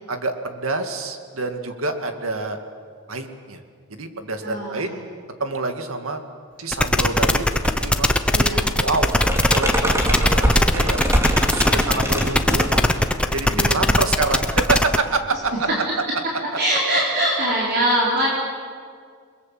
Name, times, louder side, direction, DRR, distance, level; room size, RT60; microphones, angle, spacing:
voice 1, 0.1-2.6 3.1-3.6 3.9-4.9 5.4-6.2 6.6-8.2 8.8-9.1 9.4-11.1 11.5-12.7 13.3-15.7, right 3 dB, 65° right, 6 dB, 2.3 m, -27 dB
voice 2, 4.4-5.0 8.3-8.7 11.7-11.9 13.5-13.9 16.6-18.3, right 1 dB, 50° right, -5 dB, 4.5 m, -23 dB
sound 1, 6.7-15.0, left 1 dB, 5° left, 0.9 m, -19 dB
sound 2, 7.3-7.9 8.2-13.4, equal, 15° right, 2.9 m, -24 dB
29.5 x 22.0 x 7.7 m, 2.1 s
head